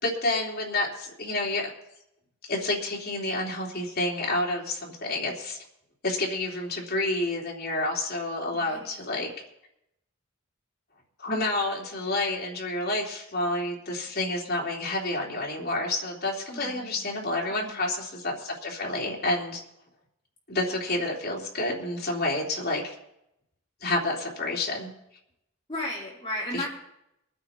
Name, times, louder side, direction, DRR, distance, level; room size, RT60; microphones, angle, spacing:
voice 1, 0.0-1.7 2.5-5.6 6.0-9.3 11.2-19.6 20.5-22.9 23.8-24.9 26.5-26.7, left 2 dB, 45° left, -3 dB, 3.4 m, -29 dB
voice 2, 8.5-9.1 16.5-17.1 17.5-17.8 25.7-26.7, left 1 dB, 25° left, -6 dB, 4.3 m, -35 dB
23.0 x 9.5 x 4.4 m, 0.80 s
head